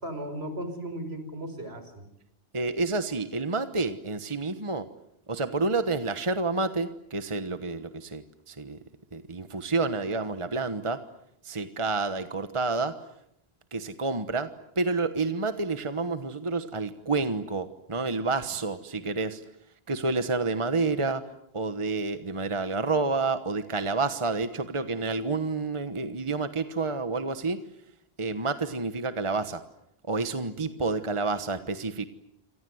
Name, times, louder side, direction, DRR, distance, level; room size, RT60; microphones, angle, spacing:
voice 1, 0.0-2.0, right 1 dB, 70° right, 8 dB, 5.7 m, -36 dB
voice 2, 2.5-4.9 5.3-8.8 9.1-11.1 11.4-13.0 13.7-19.4 19.9-27.7 28.2-29.6 30.1-32.1, right 3 dB, 30° right, 10 dB, 1.3 m, -29 dB
27.5 x 26.0 x 7.9 m, 0.78 s
omnidirectional pair, 1.1 m